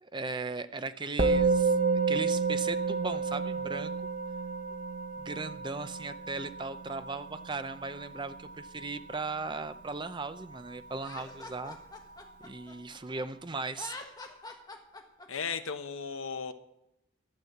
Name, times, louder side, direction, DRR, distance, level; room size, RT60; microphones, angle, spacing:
voice 1, 0.0-3.9 5.2-11.8 12.4-13.9, right 3 dB, 20° right, 11 dB, 0.6 m, -37 dB
Musical instrument, 1.2-10.7, right 4 dB, 40° right, 1.1 m, -31 dB
Laughter, 11.0-13.2 13.7-15.5, left 3 dB, 20° left, 1.4 m, -45 dB
voice 2, 15.3-16.5, left 5 dB, 70° left, 9 dB, 0.9 m, -35 dB
12.0 x 7.5 x 7.9 m, 0.83 s
head